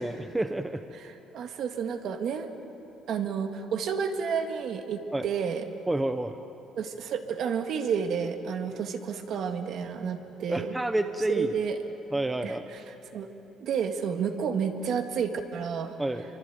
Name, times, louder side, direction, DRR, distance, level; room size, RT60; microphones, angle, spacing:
voice 1, 0.0-0.8 5.1-5.2 5.9-6.4 8.7-8.8 10.5-11.5 12.1-12.7 16.0-16.2, right 1 dB, 5° right, 8 dB, 0.6 m, -29 dB
voice 2, 0.9-2.5 3.1-5.7 6.8-10.7 11.3-11.8 12.4-13.3 13.6-16.0, right 6 dB, 50° right, 6 dB, 1.8 m, -31 dB
25.5 x 24.5 x 9.3 m, 3.0 s
cardioid pair, 175°, 0 cm